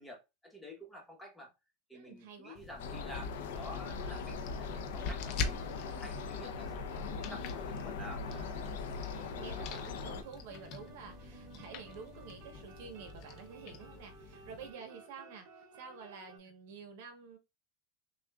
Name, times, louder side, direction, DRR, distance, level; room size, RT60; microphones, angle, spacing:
voice 1, 0.0-1.5 1.9-5.7 6.0-8.7, equal, 5° left, 1.1 m, -50 dB
voice 2, 1.9-2.6 9.1-17.4, right 5 dB, 70° right, 1.2 m, -50 dB
sound 1, 2.6-14.7, left 4 dB, 45° left, 0.6 m, -44 dB
sound 2, 2.8-10.2, left 5 dB, 80° left, 0.6 m, -40 dB
sound 3, 3.9-16.4, right 4 dB, 45° right, 1.8 m, -56 dB
6.1 x 2.4 x 2.4 m
supercardioid pair, 155°, 0 cm